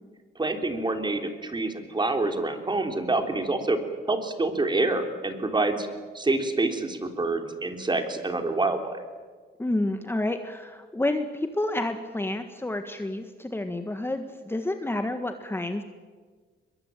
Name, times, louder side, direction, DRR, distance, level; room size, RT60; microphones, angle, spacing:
voice 1, 0.4-3.8 4.1-5.9 6.1-9.0, right 2 dB, 25° right, 5 dB, 3.6 m, -27 dB
voice 2, 9.6-15.8, left 1 dB, 10° left, 6 dB, 1.7 m, -29 dB
23.0 x 22.0 x 9.1 m, 1.5 s
cardioid pair, 90°, 20 cm